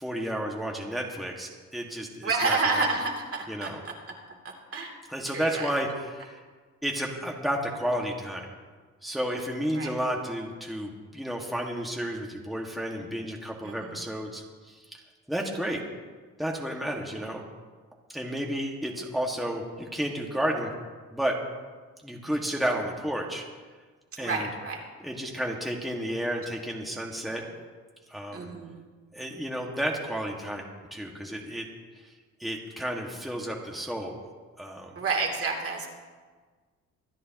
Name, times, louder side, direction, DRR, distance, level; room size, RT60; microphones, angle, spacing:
voice 1, 0.0-2.9 3.5-3.8 5.1-6.4 6.8-8.5 9.0-15.0 15.3-15.8 16.4-17.4 18.1-20.7 21.1-21.4 22.0-23.4 24.2-24.5 25.0-27.4 28.1-28.5 29.1-30.6 30.9-31.7 32.0-32.1 32.4-34.1 34.6-35.0, equal, ahead, -1 dB, 1.7 m, -32 dB
voice 2, 2.2-3.9 4.4-4.9 5.3-5.7 9.7-9.9 13.6-13.9 24.2-24.8 27.3-27.4 28.3-28.8 34.9-35.9, right 3 dB, 50° right, 1 dB, 2.9 m, -29 dB
25.0 x 10.0 x 3.0 m, 1.5 s
cardioid pair, 90°, 30 cm